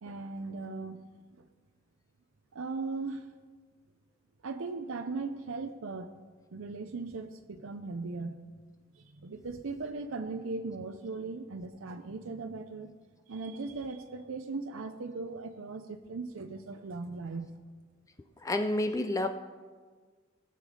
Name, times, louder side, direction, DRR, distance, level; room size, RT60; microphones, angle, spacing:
voice 1, 0.0-1.0 2.5-3.3 4.4-6.1 6.5-8.4 8.9-12.9 13.3-17.5, right 3 dB, 85° right, 7 dB, 0.6 m, -38 dB
voice 2, 18.4-19.3, left 1 dB, 15° left, 8 dB, 0.4 m, -29 dB
19.0 x 6.8 x 5.0 m, 1.5 s
head